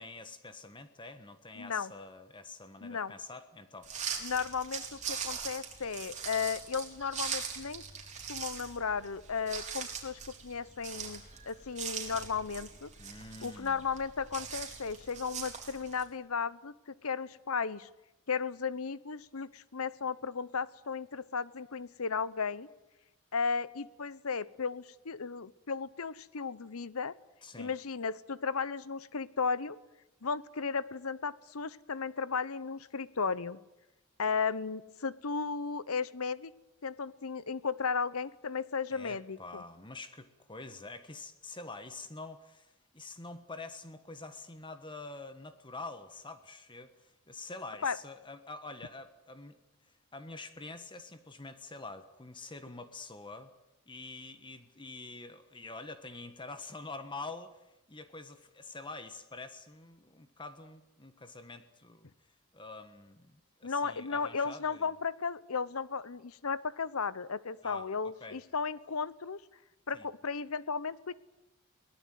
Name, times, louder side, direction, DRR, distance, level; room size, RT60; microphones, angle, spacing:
voice 1, 0.0-4.2 13.0-13.8 27.4-27.7 38.9-49.6 50.1-53.5 53.9-62.1 62.5-64.9 67.6-68.4 69.9-70.1, left 3 dB, 25° left, 10 dB, 1.4 m, -46 dB
voice 2, 1.6-1.9 2.8-3.1 4.2-7.8 8.3-12.9 13.4-17.9 18.3-22.7 23.3-27.2 27.6-29.8 30.2-33.6 34.2-36.5 36.8-39.6 47.8-48.0 63.6-69.4 69.9-71.1, left 5 dB, 85° left, 17 dB, 0.9 m, -35 dB
sound 1, 3.8-16.0, right 7 dB, 35° right, 4.3 m, -41 dB
22.5 x 19.0 x 9.3 m, 0.95 s
head